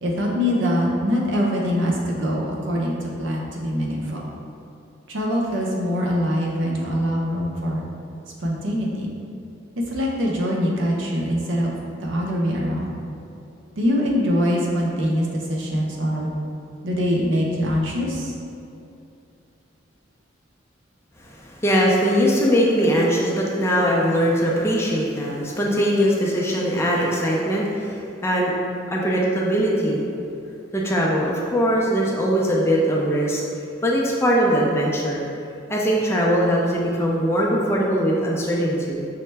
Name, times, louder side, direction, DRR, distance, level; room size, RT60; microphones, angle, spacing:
voice 1, 0.0-4.2 5.1-7.8 8.4-9.1 9.9-13.0 13.8-16.3 16.8-18.3, equal, 70° right, -2 dB, 0.7 m, -23 dB
voice 2, 21.2-28.5 28.9-30.0 30.7-33.4 33.8-35.2 35.7-39.1, equal, 15° left, -3 dB, 0.4 m, -21 dB
5.6 x 2.1 x 3.3 m, 2.7 s
head